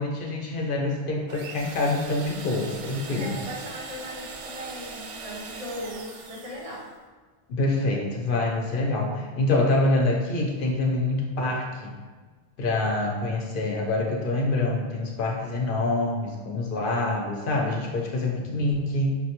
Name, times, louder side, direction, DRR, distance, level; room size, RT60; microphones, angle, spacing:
voice 1, 0.0-3.4 7.5-11.9 12.6-19.2, left 2 dB, 55° left, -1 dB, 0.8 m, -26 dB
sound 1, 1.3-6.9, right 4 dB, 85° right, 0.9 m, -40 dB
voice 2, 3.1-6.9, equal, 35° right, -3 dB, 0.8 m, -38 dB
5.8 x 2.2 x 2.9 m, 1.4 s
omnidirectional pair, 1.2 m